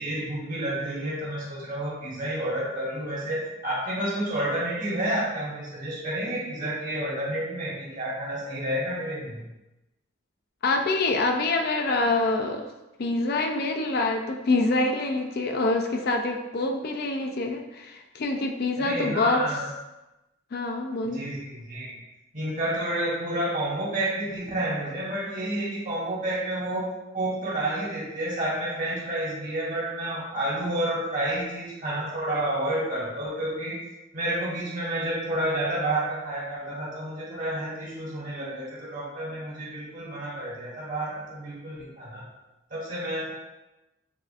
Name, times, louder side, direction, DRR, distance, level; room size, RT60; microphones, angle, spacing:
voice 1, 0.0-9.5 18.8-19.7 21.1-22.0 22.3-33.8 34.1-42.3 42.7-43.3, right 1 dB, 40° right, -5 dB, 1.2 m, -30 dB
voice 2, 10.6-12.7 13.0-19.4 20.5-21.2, left 2 dB, 50° left, 3 dB, 0.4 m, -26 dB
6.8 x 2.5 x 2.5 m, 1.0 s
head